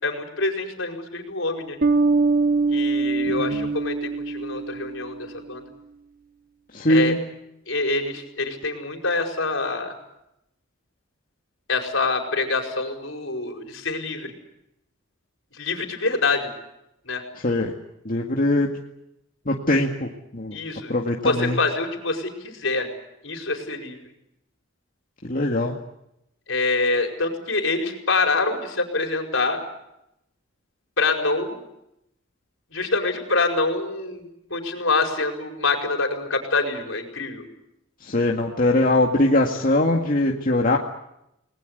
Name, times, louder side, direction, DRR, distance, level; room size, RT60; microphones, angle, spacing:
voice 1, 0.0-1.8 2.7-5.6 6.9-7.1 7.7-9.9 11.7-14.3 15.6-16.5 17.1-17.2 20.5-20.9 21.2-22.9 23.2-24.0 26.5-29.6 31.0-31.6 32.7-34.2 34.5-37.4, left 3 dB, 65° left, 4 dB, 5.0 m, -25 dB
Bass guitar, 1.8-5.3, right 3 dB, 40° right, 1.2 m, -23 dB
voice 2, 3.3-3.7 6.7-7.2 17.4-17.7 18.1-18.7 19.5-20.6 20.9-21.6 25.2-25.7 38.0-40.8, left 1 dB, 40° left, 0 dB, 2.1 m, -21 dB
30.0 x 20.0 x 8.1 m, 0.83 s
head